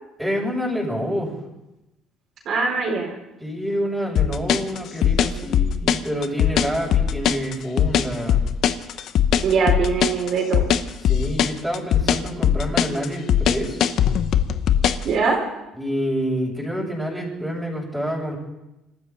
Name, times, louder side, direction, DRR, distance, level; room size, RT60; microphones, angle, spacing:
voice 1, 0.2-1.3 3.4-8.4 11.0-13.8 15.8-18.4, equal, ahead, -5 dB, 7.1 m, -27 dB
voice 2, 2.4-3.1 9.4-10.7 15.0-15.4, right 5 dB, 60° right, -2 dB, 4.3 m, -22 dB
sound 1, 4.2-15.1, left 9 dB, 60° left, 0.8 m, -20 dB
25.5 x 13.5 x 4.0 m, 0.94 s
cardioid pair, 110°, 0 cm